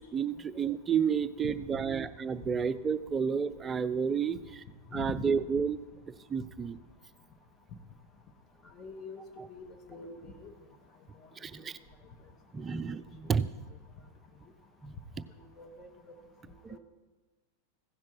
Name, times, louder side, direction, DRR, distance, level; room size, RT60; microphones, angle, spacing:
voice 1, 0.1-4.6 4.9-5.8 6.3-6.8 9.4-9.5 11.4-11.8 12.5-13.5 14.8-14.9 16.6-16.8, right 6 dB, 20° right, 13 dB, 0.4 m, -31 dB
voice 2, 1.4-1.8 4.9-5.1 8.8-9.2 9.5-10.5 15.6-15.9 16.7-16.8, left 4 dB, 25° left, 5 dB, 1.3 m, -44 dB
15.5 x 5.9 x 4.6 m, 1.2 s
figure-of-eight pair, 90°, 0 cm